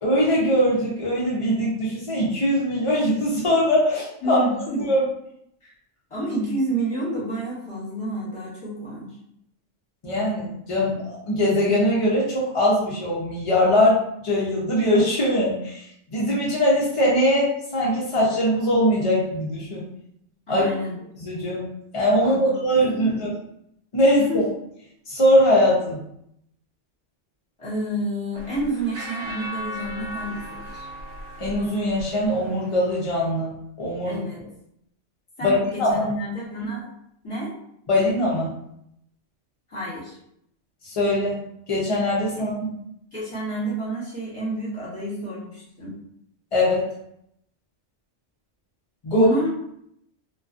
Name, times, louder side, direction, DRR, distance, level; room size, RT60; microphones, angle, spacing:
voice 1, 0.0-4.4 4.9-5.0 10.0-15.9 16.1-19.8 20.5-20.7 21.2-23.3 23.9-24.4 25.1-26.0 31.4-33.5 33.8-34.2 35.4-36.0 37.9-38.5 40.8-41.4 41.7-42.7 46.5-46.9 49.0-49.3, equal, 55° left, -6 dB, 0.3 m, -21 dB
voice 2, 4.2-4.8 5.6-5.7 6.1-9.1 20.5-21.0 22.2-23.2 24.3-24.5 27.6-30.8 34.0-34.4 35.4-36.9 37.2-37.5 39.7-40.2 42.4-42.5 43.1-45.9 49.1-49.5, right 1 dB, 30° left, -7 dB, 0.9 m, -29 dB
sound 1, 28.4-32.6, equal, 80° right, 1.0 m, -36 dB
2.4 x 2.2 x 2.4 m, 0.74 s
omnidirectional pair, 1.3 m